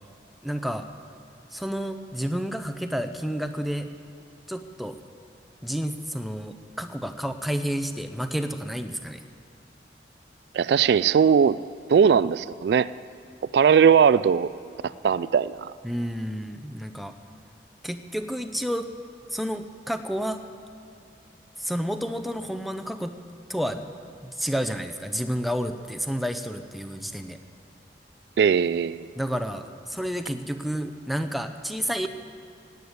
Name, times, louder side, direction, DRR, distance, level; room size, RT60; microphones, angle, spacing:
voice 1, 0.4-0.9 1.5-3.9 4.5-4.9 5.6-9.2 15.8-17.1 17.8-18.9 19.3-20.4 21.6-23.1 23.5-23.9 24.2-27.4 29.1-32.1, equal, ahead, 7 dB, 0.6 m, -30 dB
voice 2, 10.5-11.6 11.9-12.9 13.5-14.5 14.8-15.7 28.4-29.1, right 7 dB, 70° right, 16 dB, 0.3 m, -19 dB
17.5 x 8.2 x 9.5 m, 2.6 s
head